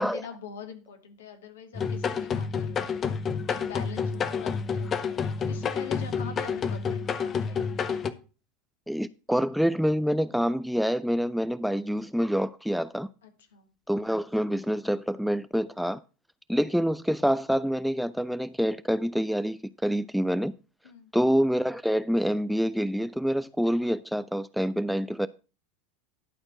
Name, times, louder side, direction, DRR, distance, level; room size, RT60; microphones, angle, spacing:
voice 1, 0.0-2.9 3.5-7.7 13.2-13.7 20.8-21.1, left 6 dB, 65° left, 1.7 m, -44 dB
sound 1, 1.8-8.1, left 6 dB, 30° left, 0.8 m, -29 dB
voice 2, 8.9-13.1 13.9-16.0 16.5-20.5 21.1-25.3, equal, ahead, 0.3 m, -26 dB
11.5 x 4.4 x 5.9 m
figure-of-eight pair, 80°, 0 cm